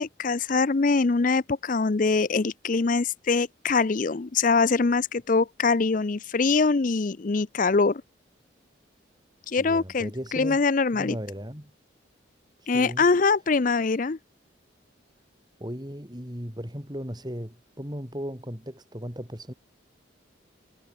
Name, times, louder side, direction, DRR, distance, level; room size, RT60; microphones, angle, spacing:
voice 1, 0.0-8.0 9.5-11.2 12.7-14.2, left 4 dB, 40° left, 0.5 m, -23 dB
voice 2, 9.6-10.6 10.9-11.7 12.6-13.1 15.6-19.5, equal, 20° right, 4.4 m, -36 dB
head